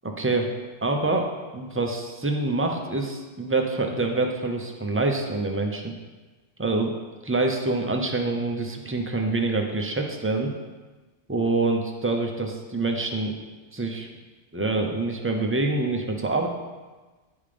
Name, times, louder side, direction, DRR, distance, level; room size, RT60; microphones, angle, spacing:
voice 1, 0.2-0.5 0.8-5.9 6.6-6.9 7.2-10.5 11.3-13.4 13.7-14.1 14.5-16.5, right 2 dB, 15° right, 2 dB, 0.4 m, -26 dB
9.5 x 3.6 x 5.1 m, 1.3 s
omnidirectional pair, 1.3 m